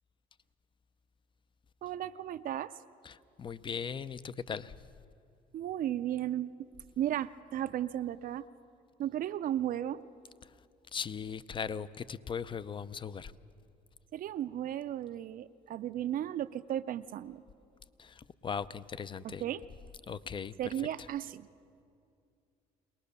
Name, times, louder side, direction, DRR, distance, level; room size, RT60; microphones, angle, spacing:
voice 1, 1.8-2.7 5.5-6.5 7.0-8.5 9.0-10.0 14.1-17.4 19.2-19.6 20.6-21.5, right 11 dB, 55° right, 11 dB, 0.5 m, -35 dB
voice 2, 3.0-4.7 10.9-13.3 18.0-19.4 20.1-20.5, left 6 dB, 30° left, 16 dB, 0.6 m, -38 dB
23.0 x 19.0 x 6.8 m, 2.4 s
cardioid pair, 90°, 17 cm